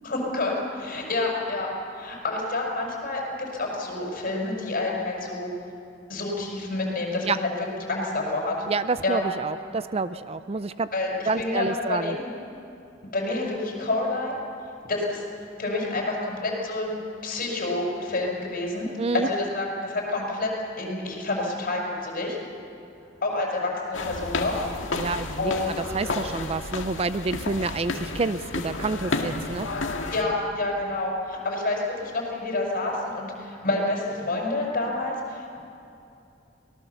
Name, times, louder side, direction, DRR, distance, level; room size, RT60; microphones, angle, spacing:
voice 1, 0.0-5.5 6.1-8.6 9.0-9.2 10.9-12.3 13.1-14.3 14.9-15.2 15.6-17.0 17.2-18.9 19.1-20.5 20.8-22.4 23.2-24.5 25.0-25.7 30.1-35.6, left 2 dB, 45° left, -1 dB, 5.7 m, -28 dB
voice 2, 8.7-10.9 11.3-12.2 19.0-19.3 24.9-29.7, right 3 dB, 30° right, 13 dB, 0.5 m, -28 dB
sound 1, 23.9-30.2, left 3 dB, 80° left, 1.8 m, -31 dB
24.0 x 18.5 x 7.0 m, 2.8 s
head